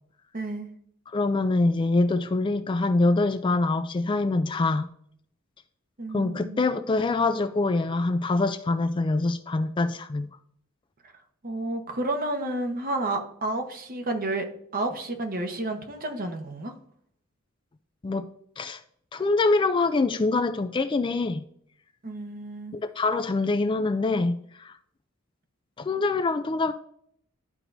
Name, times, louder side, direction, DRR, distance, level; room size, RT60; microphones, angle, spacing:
voice 1, 0.3-0.7 6.0-6.6 11.4-14.5 14.7-16.7 22.0-22.8, right 2 dB, 45° right, 5 dB, 1.0 m, -31 dB
voice 2, 1.1-4.9 6.1-10.3 18.0-18.3 18.6-18.8 19.1-21.4 22.7-24.8 25.8-26.7, left 3 dB, 25° left, 9 dB, 0.3 m, -25 dB
12.0 x 4.6 x 2.6 m, 0.67 s
head